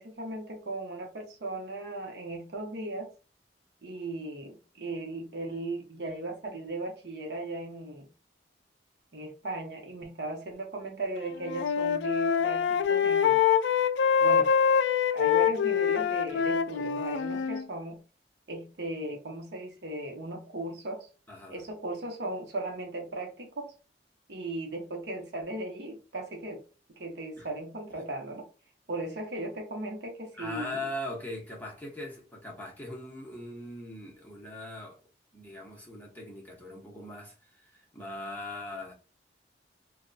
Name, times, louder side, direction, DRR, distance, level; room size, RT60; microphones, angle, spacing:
voice 1, 0.0-3.1 3.8-8.1 9.1-13.4 14.2-14.5 15.1-18.0 18.5-21.1 21.5-23.7 24.3-26.6 27.0-28.5 28.9-30.9, right 2 dB, 65° right, 0.9 m, -37 dB
Wind instrument woodwind instrument, 11.2-17.6, left 7 dB, 80° left, 0.3 m, -25 dB
voice 2, 21.3-21.7 27.4-27.5 28.0-28.1 30.4-35.0 35.3-38.9, left 1 dB, 10° left, 0.9 m, -40 dB
2.3 x 2.2 x 3.8 m
head